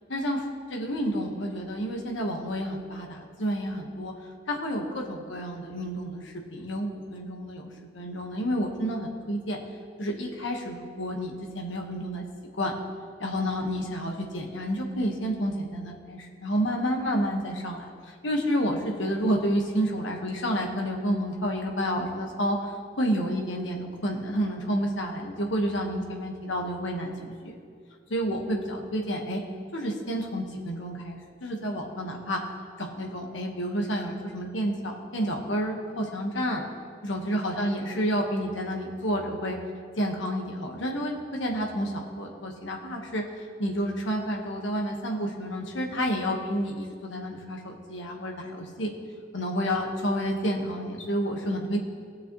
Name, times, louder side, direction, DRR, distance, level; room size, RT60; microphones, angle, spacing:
voice 1, 0.1-0.4 0.7-4.1 4.5-7.7 7.9-9.6 10.0-12.2 12.6-12.7 13.2-17.9 18.2-27.5 28.1-29.4 29.7-32.4 32.8-36.6 37.0-39.6 40.0-48.9 49.3-51.8, equal, 90° left, 1 dB, 1.5 m, -30 dB
18.5 x 6.7 x 3.2 m, 2.2 s
head